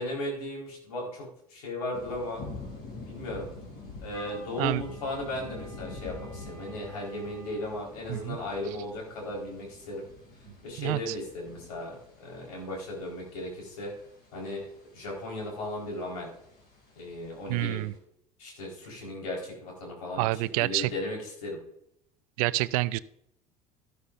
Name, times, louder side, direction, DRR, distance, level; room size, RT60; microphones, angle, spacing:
voice 1, 0.0-2.4 3.1-3.5 4.0-10.0 10.6-13.9 14.3-14.6 14.9-16.3 16.9-17.8 18.4-20.2 20.6-21.6, left 1 dB, 80° left, -2 dB, 4.4 m, -36 dB
sound 1, 1.9-18.0, left 3 dB, 55° left, 4.7 m, -47 dB
Wind instrument woodwind instrument, 4.1-7.8, right 1 dB, 15° left, 3.5 m, -49 dB
voice 2, 10.8-11.1 17.5-17.9 20.2-20.9 22.4-23.0, right 18 dB, 70° right, 18 dB, 0.5 m, -28 dB
13.0 x 12.5 x 2.6 m, 0.74 s
hypercardioid pair, 75°, 19 cm